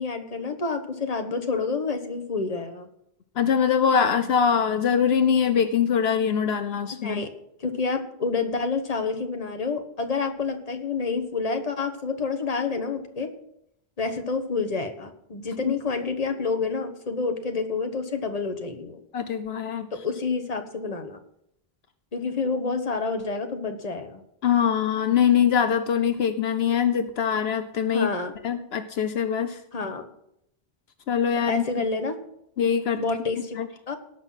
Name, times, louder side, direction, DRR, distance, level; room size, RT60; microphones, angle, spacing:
voice 1, 0.0-2.9 7.0-7.3 7.6-13.3 14.0-19.0 19.9-21.2 22.1-24.2 27.9-28.3 29.7-30.0 31.5-32.2 33.0-33.6 33.9-34.0, left 4 dB, 35° left, 6 dB, 1.4 m, -28 dB
voice 2, 3.4-7.2 15.6-15.7 19.1-19.9 24.4-28.1 28.4-29.6 31.1-31.9 32.6-33.0 33.5-33.7, left 7 dB, 75° left, 10 dB, 1.0 m, -23 dB
18.5 x 6.1 x 5.8 m, 0.76 s
omnidirectional pair, 1.1 m